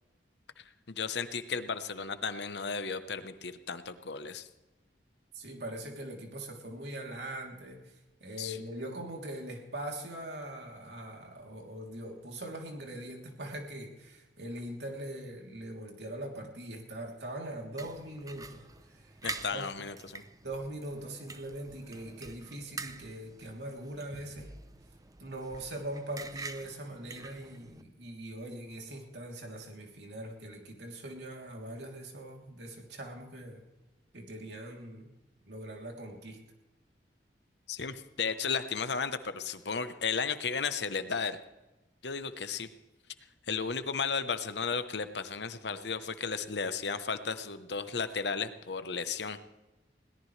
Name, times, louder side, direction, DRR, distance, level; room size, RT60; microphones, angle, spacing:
voice 1, 0.6-4.5 8.4-8.6 19.2-20.2 37.7-41.4 42.0-42.7 43.5-49.4, left 5 dB, 70° left, 11 dB, 1.0 m, -34 dB
voice 2, 5.3-7.9 8.2-19.1 19.5-19.7 20.4-24.5 25.2-33.6 34.1-35.1 35.5-36.4, right 1 dB, 70° right, 1 dB, 3.2 m, -41 dB
sound 1, 17.8-27.8, right 4 dB, 20° right, 0.7 m, -46 dB
21.5 x 17.5 x 3.3 m, 1.1 s
head